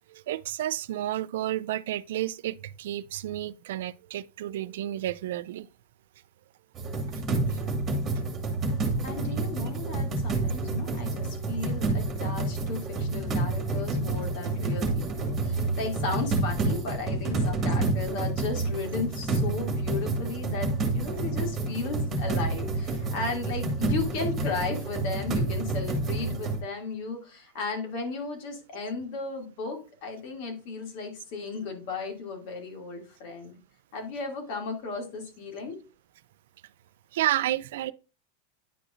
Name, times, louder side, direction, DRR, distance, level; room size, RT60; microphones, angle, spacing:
voice 1, 0.1-5.7 7.5-7.6 37.1-37.9, right 13 dB, 75° right, 0.4 m, -31 dB
sound 1, 6.7-26.6, right 2 dB, 25° right, 1.9 m, -29 dB
voice 2, 9.0-33.5 33.9-35.8, left 4 dB, 55° left, 2.5 m, -35 dB
9.9 x 4.9 x 2.5 m
supercardioid pair, 145°, 0 cm